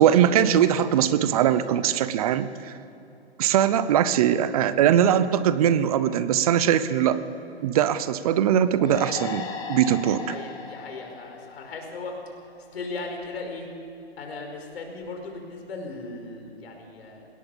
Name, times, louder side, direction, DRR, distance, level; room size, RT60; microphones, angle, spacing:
voice 1, 0.0-2.7 3.4-7.2 7.6-10.3, right 10 dB, 35° right, 14 dB, 0.8 m, -21 dB
voice 2, 3.4-4.0 10.3-12.2 12.7-13.7 14.2-17.3, left 3 dB, 65° left, 2 dB, 5.2 m, -37 dB
sound 1, 8.8-12.3, left 5 dB, 10° left, 1.4 m, -37 dB
21.0 x 18.0 x 7.3 m, 2.8 s
hypercardioid pair, 145°, 33 cm